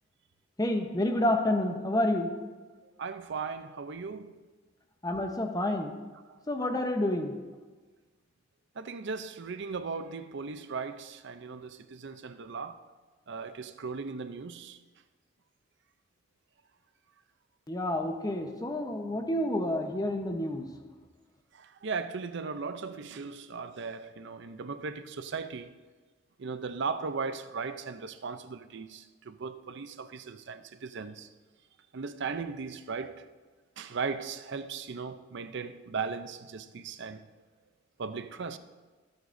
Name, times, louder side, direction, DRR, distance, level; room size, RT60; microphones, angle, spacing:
voice 1, 0.6-2.3 5.0-5.9 6.5-7.3 17.7-20.7, left 1 dB, 20° left, 0.9 m, -29 dB
voice 2, 2.7-4.3 6.3-6.4 8.8-12.8 13.3-14.8 21.5-25.7 26.4-31.3 31.9-33.3 33.8-37.3 38.0-38.6, right 5 dB, 65° right, 0.6 m, -37 dB
21.5 x 7.9 x 2.7 m
head